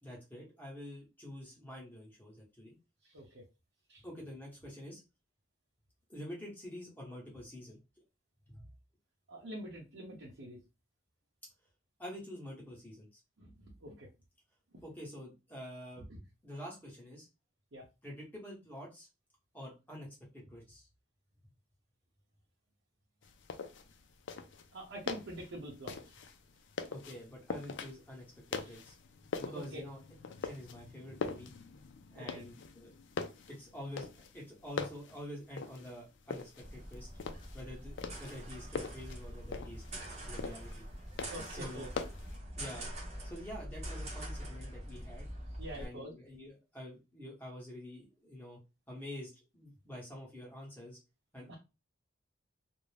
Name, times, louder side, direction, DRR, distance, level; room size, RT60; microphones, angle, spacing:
voice 1, 0.0-2.7 4.0-5.0 6.1-7.8 8.5-8.7 12.0-13.2 14.8-16.0 16.4-17.3 18.0-19.1 19.5-20.1 20.3-20.9 26.9-28.2 28.5-29.0 29.4-30.0 30.4-31.5 32.1-32.9 33.5-37.1 37.5-39.8 40.2-40.8 41.5-41.9 42.6-42.9 43.2-45.3 45.7-48.6 48.9-51.0 51.3-51.6, equal, 10° left, -3 dB, 1.0 m, -47 dB
voice 2, 3.0-3.4 3.9-4.0 9.3-10.6 13.4-13.5 13.8-14.1 16.0-16.1 17.7-17.8 24.7-26.2 28.6-28.8 29.4-29.8 32.1-32.4 41.3-41.9 45.6-46.1 51.5-51.6, right 1 dB, 75° right, -4 dB, 0.7 m, -46 dB
sound 1, 23.2-42.4, left 5 dB, 70° left, 0.4 m, -43 dB
sound 2, 36.6-45.9, equal, 35° right, 0.7 m, -44 dB
2.5 x 2.1 x 3.2 m, 0.28 s
head